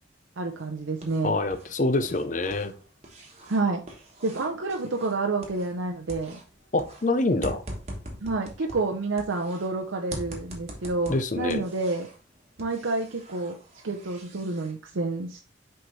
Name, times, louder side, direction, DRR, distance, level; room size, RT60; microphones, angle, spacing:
voice 1, 0.4-1.4 3.5-3.8 4.2-6.4 8.2-12.1 12.6-13.5 13.8-15.4, right 3 dB, 80° right, 0.7 m, -29 dB
sound 1, 0.6-1.7 2.0-5.8 6.1-9.7 10.1-12.2 12.6-14.7, right 1 dB, 30° right, 1.3 m, -43 dB
voice 2, 1.2-2.7 6.7-7.6 11.1-11.6, left 2 dB, 40° left, 0.6 m, -25 dB
6.2 x 4.7 x 3.2 m
head